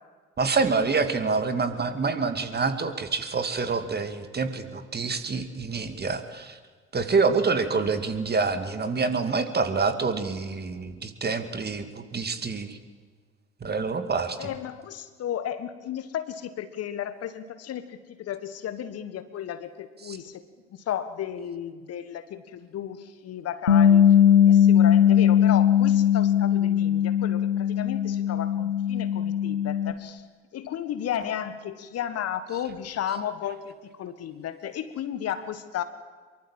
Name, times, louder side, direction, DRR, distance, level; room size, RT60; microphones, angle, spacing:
voice 1, 0.4-6.6 6.9-12.8 13.6-14.5 20.0-20.2, right 4 dB, 30° right, 8 dB, 2.4 m, -27 dB
voice 2, 14.4-20.4 20.7-24.1 24.4-30.2 30.5-35.8, left 10 dB, 50° left, 12 dB, 1.5 m, -34 dB
Bass guitar, 23.7-29.9, left 9 dB, 85° left, 1.0 m, -19 dB
24.5 x 23.5 x 7.5 m, 1.5 s
figure-of-eight pair, 50°, 32 cm